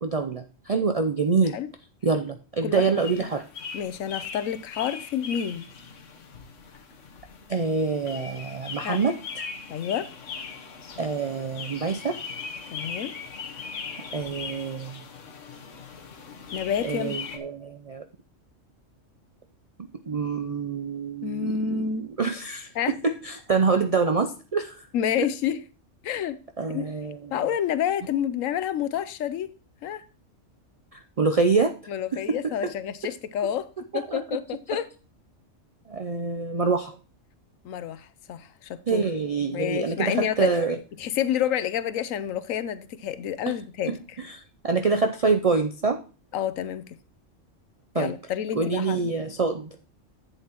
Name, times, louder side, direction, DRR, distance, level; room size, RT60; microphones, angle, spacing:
voice 1, 0.0-1.6 2.0-3.4 7.5-9.4 11.0-12.2 14.1-15.0 16.8-18.0 20.1-21.8 22.2-24.9 26.6-27.4 30.9-31.7 32.1-32.7 33.9-34.2 34.7-34.8 35.9-37.0 38.9-40.8 43.5-43.6 43.9-46.0 47.9-48.1 48.6-49.8, right 4 dB, 60° right, 0.3 m, -26 dB
sound 1, 3.0-17.4, left 5 dB, 70° left, 1.4 m, -40 dB
voice 2, 3.7-5.7 8.8-9.0 9.7-10.1 12.7-13.1 16.5-17.2 21.2-22.1 22.8-22.9 24.9-25.6 26.0-26.4 26.7-26.9 27.3-29.5 29.8-30.0 31.9-33.7 33.9-34.9 37.6-39.0 39.5-40.5 41.0-44.0 46.3-47.0 47.9-49.0, left 9 dB, 90° left, 1.1 m, -29 dB
10.5 x 8.1 x 3.0 m
omnidirectional pair, 1.3 m